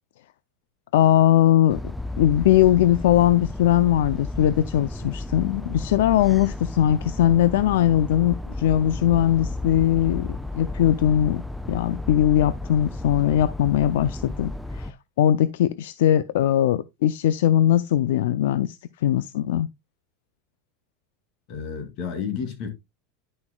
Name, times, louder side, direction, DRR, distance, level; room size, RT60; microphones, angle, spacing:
voice 1, 0.9-1.8 2.2-19.7, left 11 dB, 80° left, 0.4 m, -20 dB
sound 1, 1.7-14.9, left 2 dB, ahead, 0.4 m, -33 dB
voice 2, 21.5-22.7, left 6 dB, 55° left, 2.7 m, -31 dB
10.5 x 6.0 x 2.3 m
supercardioid pair, 135°, 0 cm